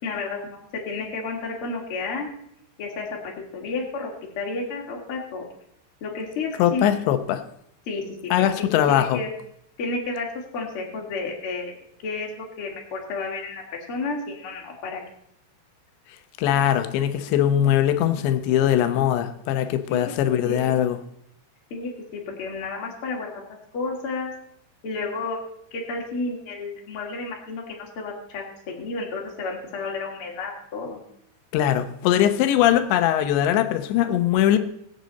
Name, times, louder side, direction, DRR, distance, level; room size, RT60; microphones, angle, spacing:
voice 1, 0.0-2.3 2.8-5.4 6.0-6.8 7.9-8.5 8.9-9.3 9.8-10.3 10.5-13.6 13.9-15.0 19.9-20.1 20.4-20.7 21.7-23.4 23.7-24.3 24.8-25.4 25.7-31.0, left 3 dB, 40° left, -1 dB, 2.2 m, -31 dB
voice 2, 6.6-7.4 8.3-9.2 16.4-21.0 31.5-34.6, left 11 dB, 75° left, 9 dB, 2.8 m, -21 dB
21.5 x 7.9 x 4.1 m, 0.73 s
omnidirectional pair, 5.7 m